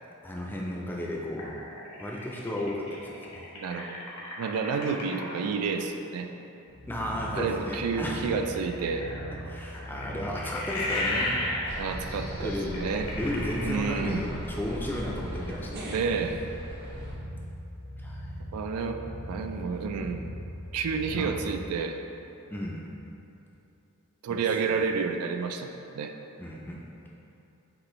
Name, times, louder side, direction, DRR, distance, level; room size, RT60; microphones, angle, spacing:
voice 1, 0.2-1.6 2.0-3.4 6.9-8.2 9.5-11.3 11.7-11.8 12.4-15.7 16.8-16.9 18.0-18.3 21.1-21.3 22.5-22.9 24.3-24.4 26.4-26.9, left 1 dB, 10° left, -3 dB, 0.3 m, -34 dB
sound 1, 1.4-5.5 8.3-14.4, left 1 dB, 80° left, 1.1 m, -34 dB
voice 2, 3.5-4.0 4.4-6.3 7.3-9.1 11.8-12.5 12.8-13.1 13.6-14.3 15.9-16.4 18.5-19.0 19.3-20.3 20.7-22.0 24.2-26.1, right 5 dB, 85° right, 5 dB, 0.3 m, -30 dB
sound 2, 6.7-21.6, equal, 65° right, 1.1 m, -40 dB
sound 3, 11.7-17.1, equal, 50° right, 0.6 m, -40 dB
6.0 x 2.5 x 3.0 m, 2.9 s
head